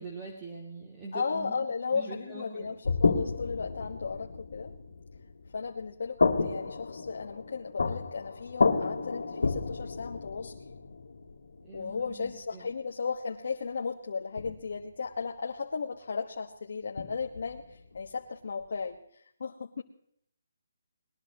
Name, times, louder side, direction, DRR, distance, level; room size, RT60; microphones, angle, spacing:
voice 1, 0.0-1.5 1.9-2.7 11.6-12.7, right 3 dB, 15° right, -3 dB, 2.7 m, -43 dB
voice 2, 1.1-4.7 5.5-10.5 11.7-19.8, left 5 dB, 60° left, 1 dB, 1.4 m, -35 dB
sound 1, 2.8-5.9 6.2-12.3 14.4-14.8 17.0-18.0, left 4 dB, 90° left, 2.3 m, -31 dB
20.5 x 20.5 x 3.0 m, 0.70 s
hypercardioid pair, 170°, 0 cm